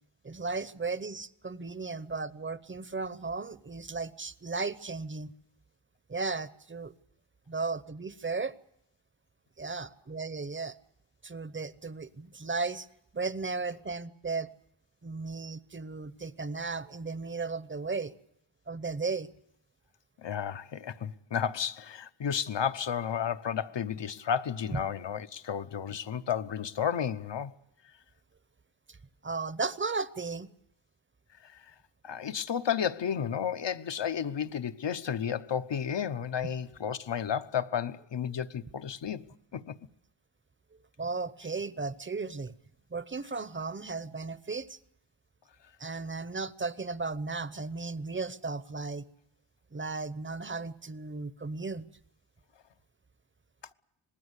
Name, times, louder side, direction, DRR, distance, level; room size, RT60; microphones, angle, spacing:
voice 1, 0.2-5.3 6.1-6.9 7.5-8.5 9.6-10.7 11.2-12.9 13.1-14.5 15.0-18.1 18.7-19.3 24.7-24.8 29.2-30.5 41.0-42.5 42.9-44.8 45.8-49.0 49.7-51.8, right 4 dB, 25° right, 0.9 m, -35 dB
voice 2, 20.2-27.5 31.4-31.5 32.0-39.2 39.5-39.8, left 8 dB, 55° left, 1.0 m, -32 dB
26.0 x 20.5 x 8.2 m
wide cardioid pair, 135°, 50 cm